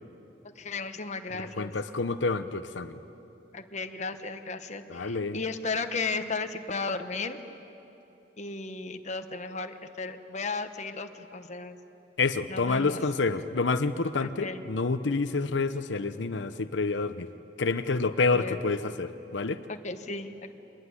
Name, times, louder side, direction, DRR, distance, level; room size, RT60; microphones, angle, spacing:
voice 1, 0.5-1.7 3.5-7.4 8.4-11.8 12.5-13.0 14.2-14.6 18.3-18.6 19.7-20.5, left 4 dB, 40° left, 7 dB, 1.2 m, -35 dB
voice 2, 1.4-3.0 4.9-5.4 12.2-17.3 17.6-19.6, left 3 dB, 85° left, 10 dB, 0.8 m, -28 dB
24.5 x 21.0 x 9.7 m, 3.0 s
head